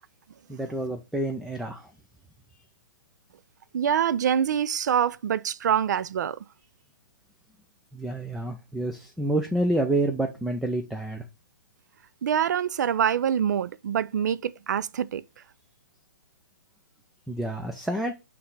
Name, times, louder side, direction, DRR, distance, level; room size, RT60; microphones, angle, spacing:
voice 1, 0.5-1.9 7.9-11.2 17.3-18.1, right 1 dB, ahead, 0.5 m, -28 dB
voice 2, 3.7-6.4 12.2-15.2, right 8 dB, 60° right, 0.5 m, -25 dB
5.5 x 3.3 x 5.7 m
hypercardioid pair, 130°, 11 cm